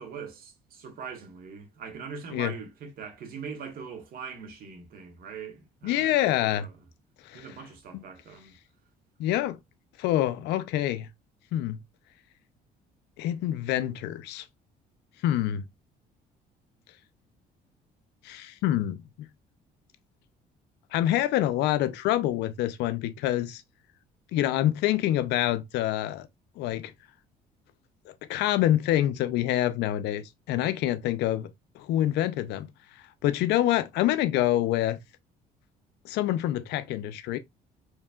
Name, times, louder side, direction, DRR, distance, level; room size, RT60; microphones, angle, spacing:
voice 1, 0.0-6.8 7.3-8.6, right 6 dB, 60° right, 1.4 m, -42 dB
voice 2, 5.8-6.7 7.3-7.5 7.9-8.0 9.2-9.6 10.0-11.1 11.5-11.8 13.2-14.4 15.2-15.6 18.2-19.3 20.9-23.6 24.3-26.3 26.6-26.9 28.3-31.5 31.8-32.7 33.2-35.0 36.0-37.4, left 13 dB, 85° left, 0.5 m, -26 dB
4.7 x 3.2 x 2.3 m
cardioid pair, 110°, 17 cm